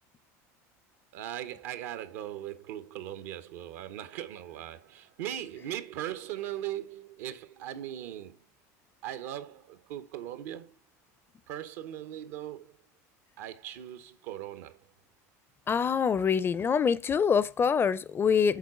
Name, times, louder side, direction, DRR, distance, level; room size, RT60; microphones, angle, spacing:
voice 1, 1.1-8.4 9.0-10.7 11.5-12.8 13.4-14.9, right 12 dB, 75° right, 1.0 m, -39 dB
voice 2, 15.7-18.6, left 6 dB, 25° left, 0.5 m, -25 dB
7.3 x 4.1 x 5.6 m
supercardioid pair, 100°, 8 cm